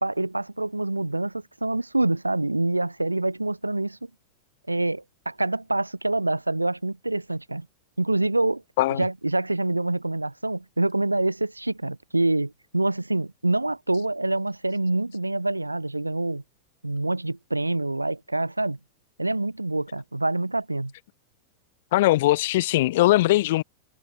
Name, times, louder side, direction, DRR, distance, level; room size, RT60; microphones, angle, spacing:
voice 1, 0.0-4.0 4.7-7.7 8.0-8.6 9.0-16.4 16.8-18.8 19.2-20.9, right 2 dB, 85° right, 0.7 m, -26 dB
voice 2, 21.9-23.6, left 17 dB, 55° left, 0.4 m, -20 dB
figure-of-eight pair, 90°, 0 cm